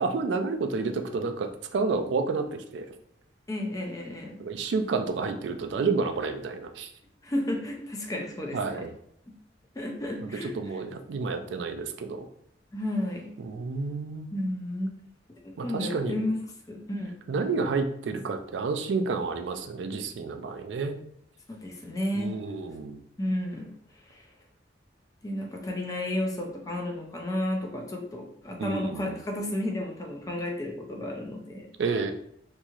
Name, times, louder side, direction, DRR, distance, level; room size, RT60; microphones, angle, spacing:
voice 1, 0.0-2.5 2.7-2.9 4.4-6.9 8.5-8.9 10.2-12.3 13.4-14.3 15.6-16.1 17.3-21.0 22.1-23.0 28.6-29.2 31.8-32.1, right 4 dB, 70° right, 6 dB, 0.3 m, -30 dB
voice 2, 3.5-4.4 7.2-8.8 9.3-9.4 9.8-10.8 12.7-13.3 14.3-14.9 15.4-16.4 16.7-17.2 21.5-22.4 23.2-23.8 24.1-24.2 25.2-31.7, left 1 dB, 20° left, 2 dB, 0.4 m, -32 dB
3.0 x 2.7 x 2.4 m, 0.69 s
head